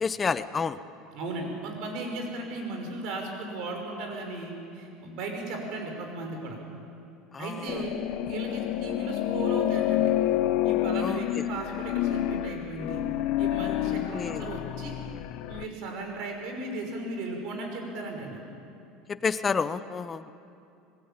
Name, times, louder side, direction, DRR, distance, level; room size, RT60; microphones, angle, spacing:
voice 1, 0.0-0.8 7.3-7.8 11.0-11.5 14.1-14.4 19.1-20.3, left 5 dB, 15° left, 13 dB, 0.6 m, -30 dB
voice 2, 1.1-6.6 7.4-7.9 8.2-10.1 10.6-13.0 13.4-14.9 15.5-18.4, right 2 dB, 55° right, 3 dB, 6.1 m, -36 dB
sound 1, 7.7-15.7, left 12 dB, 55° left, 0.8 m, -28 dB
26.0 x 21.0 x 8.9 m, 2.6 s
cardioid pair, 165°, 0 cm